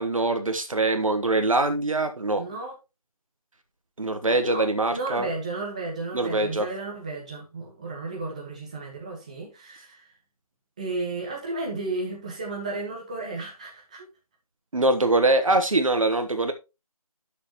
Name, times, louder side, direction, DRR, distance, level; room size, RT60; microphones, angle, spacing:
voice 1, 0.0-2.4 4.0-5.3 6.1-6.7 14.7-16.5, right 2 dB, 60° right, 1.2 m, -23 dB
voice 2, 2.4-2.7 4.3-4.6 4.9-10.1 10.8-14.1, right 2 dB, 10° right, 1.3 m, -33 dB
11.0 x 6.7 x 3.0 m
figure-of-eight pair, 175°, 19 cm